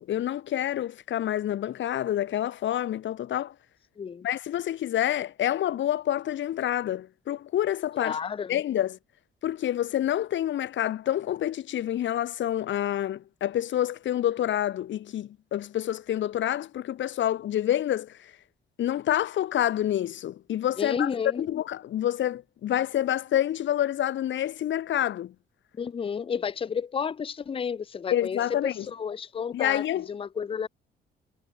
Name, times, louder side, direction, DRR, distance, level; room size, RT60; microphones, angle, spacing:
voice 1, 0.0-3.5 4.2-8.2 8.5-9.0 9.4-18.3 18.8-21.1 21.4-25.3 28.1-28.8 29.5-30.1, left 11 dB, 70° left, 1.7 m, -28 dB
voice 2, 4.0-4.3 8.0-8.6 20.8-21.5 25.8-30.7, left 6 dB, 30° left, 0.5 m, -31 dB
cardioid pair, 90°, 20 cm